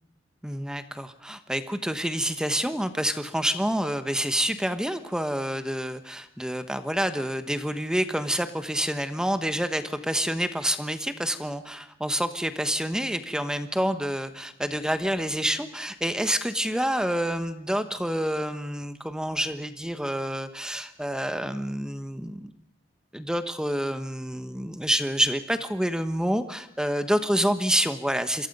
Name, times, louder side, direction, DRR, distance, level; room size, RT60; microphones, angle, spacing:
voice 1, 0.4-22.5 23.1-28.5, equal, 5° right, 10 dB, 1.1 m, -28 dB
28.0 x 22.5 x 5.4 m, 0.77 s
head